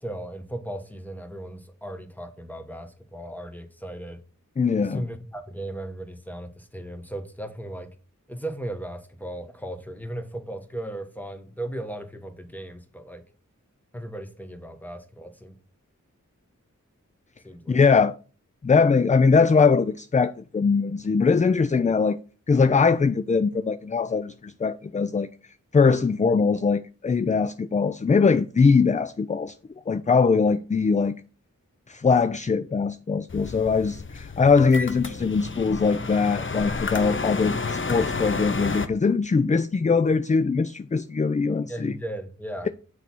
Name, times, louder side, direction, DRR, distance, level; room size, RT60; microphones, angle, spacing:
voice 1, 0.0-4.2 4.8-7.9 8.3-13.2 13.9-15.6 17.4-18.0 41.7-42.7, right 1 dB, 5° left, 1.3 m, -36 dB
voice 2, 4.6-5.0 17.7-18.1 18.6-22.2 22.5-25.3 25.7-29.5 29.9-31.2 31.9-42.0, left 5 dB, 25° left, 0.3 m, -21 dB
sound 1, 33.3-38.9, left 4 dB, 40° left, 0.7 m, -31 dB
6.8 x 4.2 x 6.1 m
wide cardioid pair, 50°, 32 cm